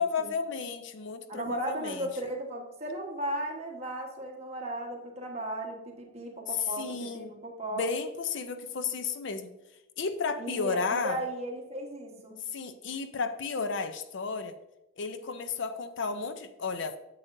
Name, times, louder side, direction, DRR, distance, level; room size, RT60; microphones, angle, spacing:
voice 1, 0.0-2.1 6.5-7.3 7.8-9.5 10.0-11.2 12.5-14.6 15.0-17.0, left 5 dB, 55° left, 10 dB, 0.5 m, -33 dB
voice 2, 1.3-7.8 10.4-12.4, right 1 dB, 30° right, 0 dB, 1.3 m, -36 dB
9.6 x 7.7 x 2.6 m, 0.96 s
head